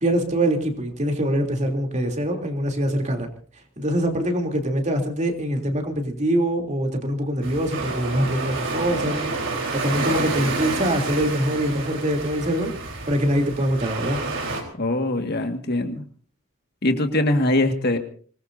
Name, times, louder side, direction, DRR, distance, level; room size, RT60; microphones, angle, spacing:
voice 1, 0.0-3.3 3.8-9.2 9.7-12.7 13.1-14.2, right 1 dB, 35° right, 3 dB, 3.3 m, -24 dB
sound 1, 7.4-14.6, right 3 dB, 60° right, 4.2 m, -29 dB
voice 2, 14.7-16.0 16.8-18.0, left 1 dB, 50° left, 6 dB, 1.9 m, -22 dB
25.5 x 20.0 x 2.7 m, 0.43 s
head